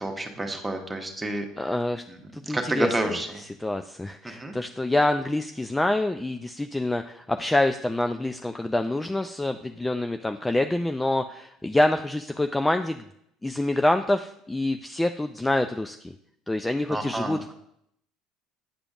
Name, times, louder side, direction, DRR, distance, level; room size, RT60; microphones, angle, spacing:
voice 1, 0.0-1.7 2.1-3.3 4.2-4.5 16.9-17.4, right 1 dB, 15° right, 3 dB, 1.1 m, -30 dB
voice 2, 1.6-2.0 2.3-2.9 3.6-13.0 13.4-16.1 16.5-17.5, left 1 dB, 10° left, 7 dB, 0.3 m, -26 dB
8.8 x 5.0 x 2.4 m, 0.74 s
hypercardioid pair, 75°, 0 cm